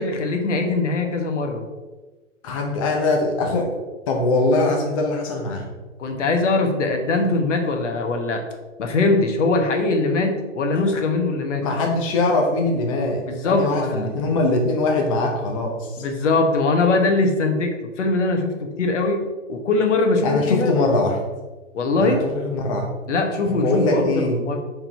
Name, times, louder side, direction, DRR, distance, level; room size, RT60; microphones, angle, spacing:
voice 1, 0.0-1.6 6.0-8.4 8.8-11.6 13.3-14.1 16.0-19.2 19.5-20.7 21.7-22.2 23.1-24.6, left 3 dB, 65° left, 4 dB, 1.3 m, -21 dB
voice 2, 2.4-3.8 4.1-5.7 10.7-10.8 11.6-16.0 20.2-21.2 22.0-22.8 23.5-24.4, left 2 dB, 25° left, 1 dB, 0.6 m, -22 dB
4.7 x 3.8 x 5.6 m, 1.2 s
hypercardioid pair, 155°, 38 cm